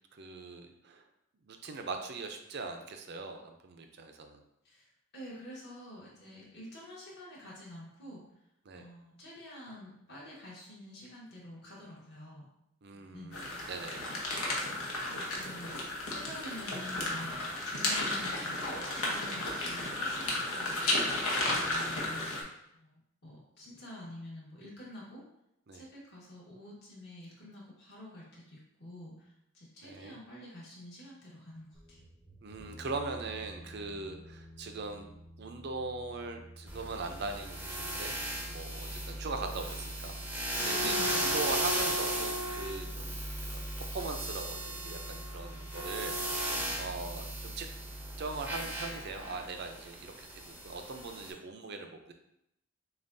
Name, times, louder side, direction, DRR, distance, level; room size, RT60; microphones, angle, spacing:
voice 1, 0.1-1.0 1.5-4.4 8.7-8.8 12.8-14.0 21.4-21.6 25.7-25.8 29.8-30.2 32.4-35.1 35.4-38.2 38.5-43.2 43.5-47.7 48.2-52.1, right 3 dB, 50° right, 5 dB, 0.5 m, -40 dB
voice 2, 5.1-8.2 8.7-12.5 12.9-13.3 15.3-21.3 21.6-22.3 22.7-25.2 25.7-32.0 40.8-41.3, left 1 dB, 50° left, -6 dB, 1.5 m, -48 dB
sound 1, 13.3-22.4, left 2 dB, 90° left, 1.0 m, -33 dB
sound 2, 31.7-39.2, equal, 20° left, 1.0 m, -51 dB
sound 3, 36.7-51.3, right 1 dB, 10° right, 0.6 m, -36 dB
6.9 x 2.4 x 2.6 m, 0.81 s
head